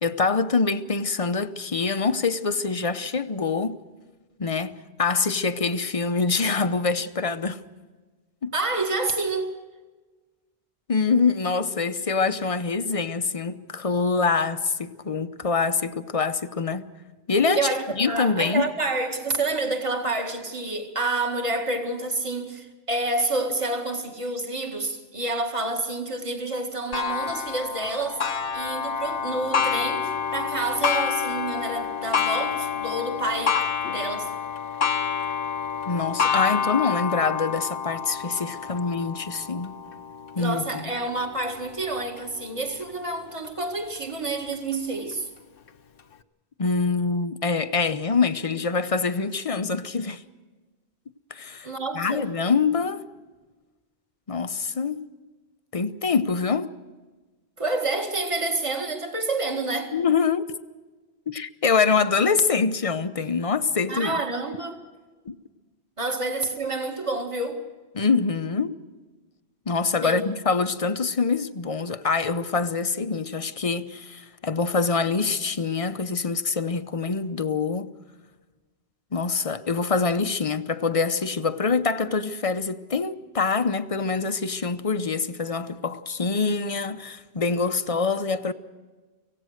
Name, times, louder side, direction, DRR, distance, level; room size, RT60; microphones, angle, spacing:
voice 1, 0.0-3.8 4.4-7.6 8.4-8.5 10.9-16.9 17.3-17.7 17.9-18.6 35.9-39.8 40.3-40.9 46.6-50.2 51.3-51.7 51.9-53.0 54.3-55.0 55.7-56.7 59.9-60.5 61.3-64.2 65.3-65.4 68.0-68.8 69.7-77.9 79.1-88.5, left 4 dB, 35° left, 0.8 m, -25 dB
voice 2, 8.5-9.5 17.5-28.2 28.5-33.6 33.9-34.3 40.4-45.3 51.6-52.3 57.6-59.9 63.9-64.8 66.0-67.6 70.0-70.2, right 2 dB, 30° right, 2.0 m, -28 dB
Clock, 26.9-42.2 42.8-42.9 43.5-43.6 44.5-44.6, left 7 dB, 60° left, 1.0 m, -28 dB
25.0 x 17.0 x 6.5 m
omnidirectional pair, 1.1 m